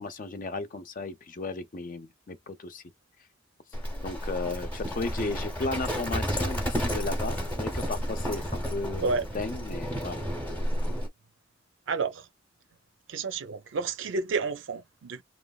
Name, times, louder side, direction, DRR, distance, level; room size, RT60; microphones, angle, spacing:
voice 1, 0.0-2.8 4.0-10.2, left 3 dB, 45° left, 0.5 m, -35 dB
Livestock farm animals working animals, 3.7-11.1, equal, 10° left, 0.8 m, -31 dB
voice 2, 8.9-9.2 11.9-12.3 13.1-15.2, right 4 dB, 65° right, 0.5 m, -30 dB
3.1 x 2.1 x 2.3 m
head